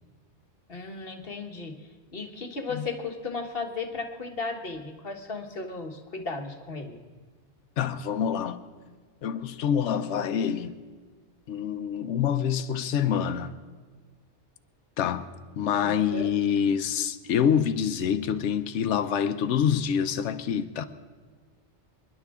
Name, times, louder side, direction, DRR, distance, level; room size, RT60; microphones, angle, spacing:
voice 1, 0.7-1.8 2.1-7.0 15.8-16.3, left 3 dB, 55° left, 1.5 m, -35 dB
voice 2, 7.8-8.6 9.2-10.7 11.5-13.5 15.0-15.3 15.6-20.9, left 8 dB, 85° left, 1.0 m, -26 dB
27.5 x 11.0 x 3.6 m
omnidirectional pair, 1.2 m